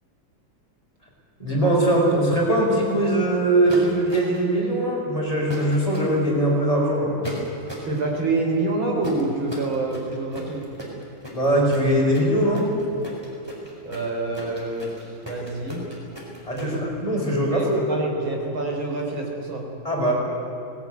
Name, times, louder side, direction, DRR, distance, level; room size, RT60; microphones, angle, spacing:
voice 1, 1.4-7.1 11.3-12.6 16.5-17.8 19.8-20.1, right 1 dB, 15° left, -3 dB, 6.1 m, -21 dB
sound 1, 3.7-4.5 5.5-6.1 7.2-7.9 9.0-16.7, equal, 10° right, 4.9 m, -37 dB
voice 2, 7.9-10.7 13.8-15.8 16.6-16.8 17.1-19.7, right 2 dB, 85° right, 1 dB, 4.6 m, -27 dB
20.0 x 19.5 x 9.5 m, 2.9 s
omnidirectional pair, 2.2 m